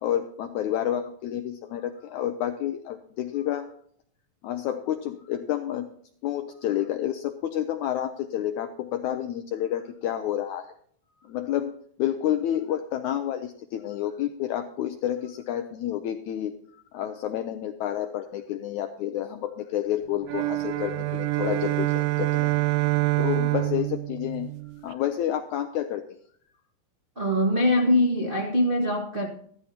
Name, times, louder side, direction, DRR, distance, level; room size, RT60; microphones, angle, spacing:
voice 1, 0.0-3.7 4.4-5.9 6.2-10.7 11.3-11.7 12.0-16.5 16.9-22.5 23.2-24.5 24.8-26.0, left 11 dB, 90° left, 7 dB, 1.7 m, -29 dB
sound 1, 20.2-24.9, right 19 dB, 85° right, 2.5 m, -26 dB
voice 2, 27.2-29.3, left 1 dB, 70° right, -1 dB, 0.5 m, -22 dB
14.0 x 14.0 x 2.8 m, 0.62 s
omnidirectional pair, 4.2 m